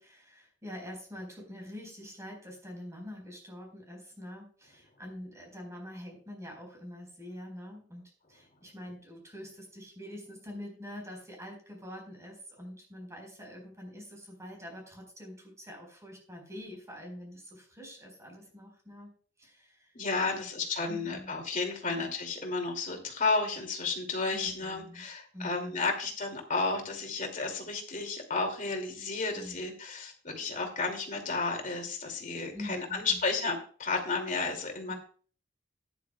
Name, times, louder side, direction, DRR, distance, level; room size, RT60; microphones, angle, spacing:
voice 1, 0.0-19.1 19.4-19.9 20.3-20.4 20.9-21.3 21.9-22.1 24.3-25.1 25.3-25.9 29.4-29.6 32.5-33.2 34.9-35.0, left 1 dB, 15° right, 1 dB, 4.6 m, -45 dB
voice 2, 19.9-34.9, left 3 dB, 45° left, 3 dB, 2.5 m, -32 dB
13.5 x 10.5 x 2.3 m, 0.42 s
head